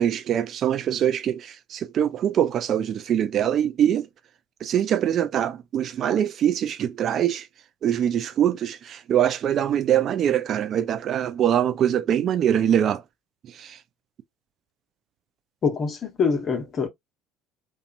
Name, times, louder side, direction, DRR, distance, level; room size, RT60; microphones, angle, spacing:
voice 1, 0.0-4.1 4.6-7.5 7.8-13.0 13.4-13.8, right 10 dB, 45° right, 0.5 m, -23 dB
voice 2, 15.6-16.9, left 5 dB, 40° left, 0.9 m, -24 dB
2.9 x 2.4 x 2.4 m
figure-of-eight pair, 60°, 0 cm